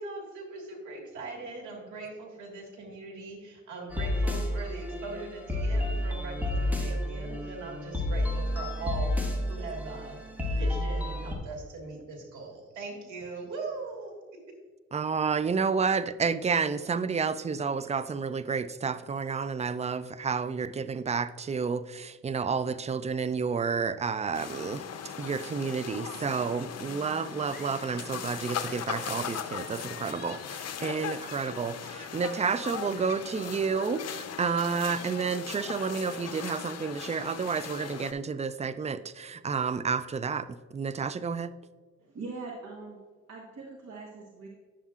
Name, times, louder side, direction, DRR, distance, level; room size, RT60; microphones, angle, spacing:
voice 1, 0.0-10.2 10.6-14.4, right 3 dB, 90° right, -1 dB, 1.8 m, -40 dB
sound 1, 3.9-11.4, left 1 dB, 5° right, 1.4 m, -30 dB
voice 2, 14.9-24.8 25.2-41.5, right 5 dB, 25° right, 15 dB, 0.3 m, -30 dB
sound 2, 24.3-38.1, left 8 dB, 60° left, 0.7 m, -39 dB
sound 3, 26.9-27.7 28.4-30.4 31.0-32.8 33.3-35.2, left 4 dB, 30° left, 2.1 m, -52 dB
voice 3, 42.0-43.0 43.3-44.5, right 3 dB, 65° right, -3 dB, 1.3 m, -42 dB
10.0 x 7.1 x 2.4 m, 1.4 s
cardioid pair, 70°, 29 cm